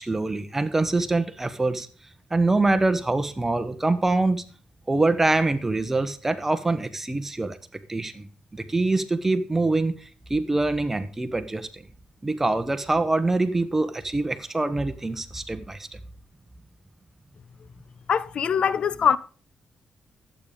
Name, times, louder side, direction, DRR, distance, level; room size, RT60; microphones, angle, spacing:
voice 1, 0.0-1.9 2.3-4.4 4.9-7.6 7.9-8.3 8.5-11.8 12.2-16.0, right 2 dB, 15° right, 1.2 m, -24 dB
voice 2, 18.1-19.2, left 7 dB, 55° left, 0.5 m, -22 dB
11.5 x 8.7 x 5.1 m
cardioid pair, 130°, 2 cm